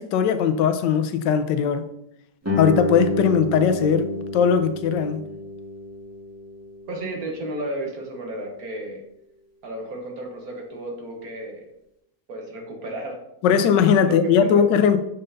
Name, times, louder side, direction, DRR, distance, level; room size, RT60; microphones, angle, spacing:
voice 1, 0.0-1.8 2.6-4.1 4.3-5.2 13.4-15.0, left 7 dB, 85° left, 9 dB, 1.3 m, -19 dB
Guitar, 2.4-7.8, left 1 dB, 10° right, 1.3 m, -29 dB
voice 2, 6.9-9.0 9.6-11.6 12.3-13.2 14.0-14.6, right 1 dB, 60° right, 1 dB, 1.6 m, -33 dB
6.6 x 5.7 x 2.6 m, 0.80 s
omnidirectional pair, 1.9 m